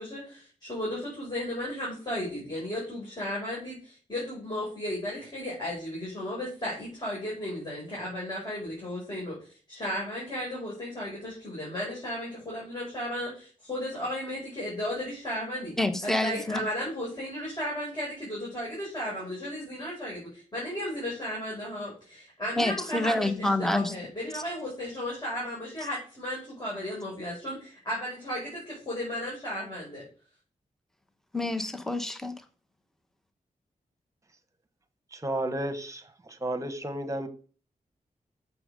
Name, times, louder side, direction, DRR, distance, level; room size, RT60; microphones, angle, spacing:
voice 1, 0.0-9.4 9.7-15.7 16.0-30.0, equal, 30° left, 5.2 m, -35 dB
voice 2, 15.8-16.6 22.6-23.9 31.3-32.4, left 1 dB, 5° left, 1.1 m, -27 dB
voice 3, 35.1-37.3, right 1 dB, 20° right, 1.4 m, -32 dB
7.2 x 6.9 x 6.5 m
wide cardioid pair, 85°, 14 cm